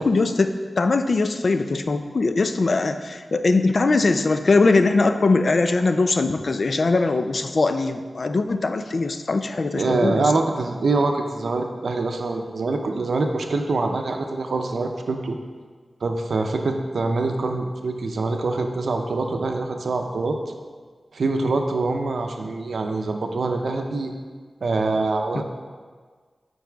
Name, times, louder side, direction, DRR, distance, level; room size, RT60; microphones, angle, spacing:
voice 1, 0.0-10.3 25.3-25.4, left 3 dB, 60° left, 8 dB, 0.4 m, -21 dB
voice 2, 9.7-15.4 16.0-20.4 21.1-24.1 24.6-25.4, right 3 dB, 90° right, 4 dB, 0.6 m, -24 dB
9.3 x 4.1 x 3.5 m, 1.6 s
wide cardioid pair, 90°, 0 cm